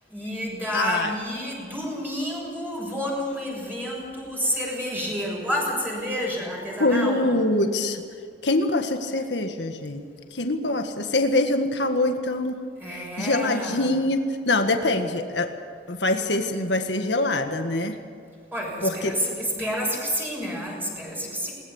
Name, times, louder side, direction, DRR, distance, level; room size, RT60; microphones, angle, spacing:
voice 1, 0.1-7.3 12.8-13.9 18.5-21.5, equal, 10° right, -3 dB, 6.5 m, -29 dB
voice 2, 0.7-1.1 6.8-8.0 8.4-10.0 10.3-12.6 13.2-15.5 15.9-17.9 18.8-19.1, left 2 dB, 75° left, 5 dB, 1.7 m, -24 dB
21.0 x 19.0 x 7.2 m, 2.3 s
head